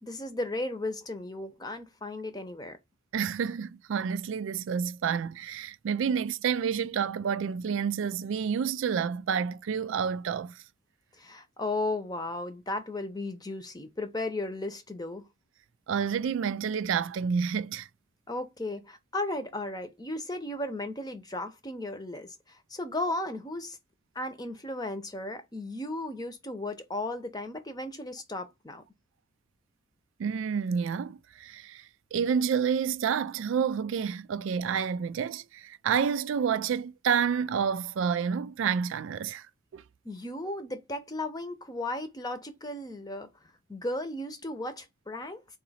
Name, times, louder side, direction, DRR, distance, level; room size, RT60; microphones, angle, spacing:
voice 1, 0.0-2.8 11.2-15.2 18.3-23.8 24.1-28.8 40.0-43.3 43.7-45.4, left 2 dB, 20° left, 0.8 m, -35 dB
voice 2, 3.1-10.6 15.9-17.9 30.2-31.8 32.1-39.5 39.7-39.8, right 7 dB, 75° right, 0.3 m, -29 dB
3.9 x 2.7 x 4.1 m
head